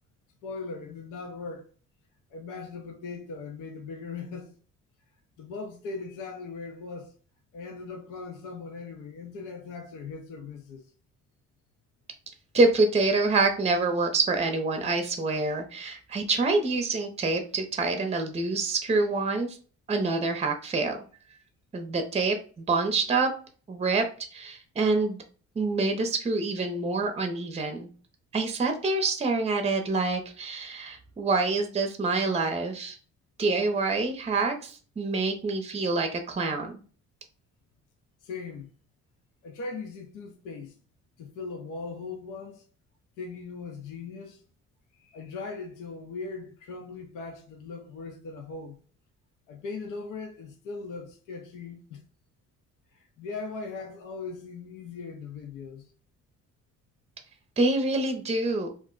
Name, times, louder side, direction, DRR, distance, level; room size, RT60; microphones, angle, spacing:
voice 1, 0.4-1.7 2.3-4.5 5.4-7.1 7.5-10.8 38.2-38.7 39.4-40.8 41.2-42.6 43.2-44.4 45.0-48.8 49.5-52.0 52.9-55.9, left 4 dB, 85° left, 0.6 m, -39 dB
voice 2, 12.5-19.6 19.9-21.0 21.7-23.3 23.7-24.0 24.3-25.2 25.6-27.9 28.3-33.0 33.4-36.7 57.6-58.7, right 3 dB, 20° right, 0.6 m, -26 dB
2.4 x 2.1 x 3.7 m
cardioid pair, 90°, 30 cm